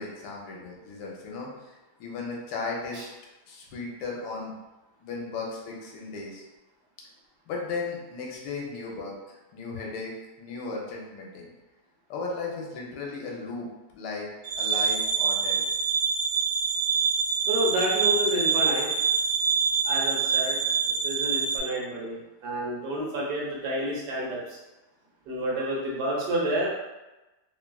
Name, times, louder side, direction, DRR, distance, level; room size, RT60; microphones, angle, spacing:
voice 1, 0.0-3.1 3.5-4.5 5.0-6.4 7.5-11.5 12.1-14.3 14.6-15.6, left 3 dB, 80° left, -2 dB, 1.2 m, -36 dB
sound 1, 14.4-21.6, right 5 dB, 90° right, 1.3 m, -25 dB
voice 2, 17.5-18.9 19.8-20.6 21.0-24.6 25.3-26.7, right 1 dB, 75° right, -4 dB, 1.2 m, -29 dB
3.1 x 2.3 x 2.2 m, 1.1 s
omnidirectional pair, 1.8 m